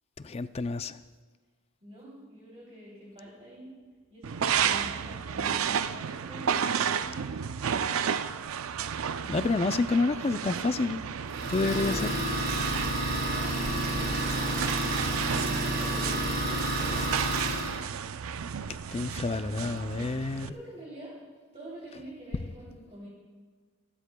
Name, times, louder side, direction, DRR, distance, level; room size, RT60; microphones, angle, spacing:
voice 1, 0.2-1.0 9.2-11.0 11.5-12.2 18.9-20.5, left 3 dB, 25° left, 12 dB, 0.4 m, -29 dB
voice 2, 1.8-3.7 4.1-7.5 13.0-14.4 15.6-17.1 20.3-21.3 21.5-23.1, right 1 dB, 30° right, -7 dB, 3.1 m, -46 dB
sound 1, 4.2-20.5, right 7 dB, 70° right, 0.4 m, -32 dB
Idling, 11.3-17.8, right 1 dB, 45° right, 3.1 m, -30 dB
27.0 x 12.5 x 2.3 m, 1.5 s
head